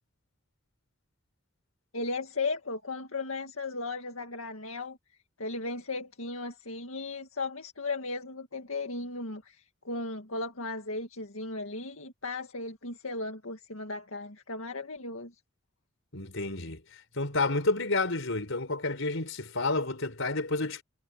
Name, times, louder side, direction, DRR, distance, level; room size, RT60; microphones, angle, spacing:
voice 1, 1.9-5.0 5.4-15.3, left 3 dB, 90° left, 2.0 m, -36 dB
voice 2, 16.1-20.8, left 3 dB, 70° left, 5.3 m, -30 dB
head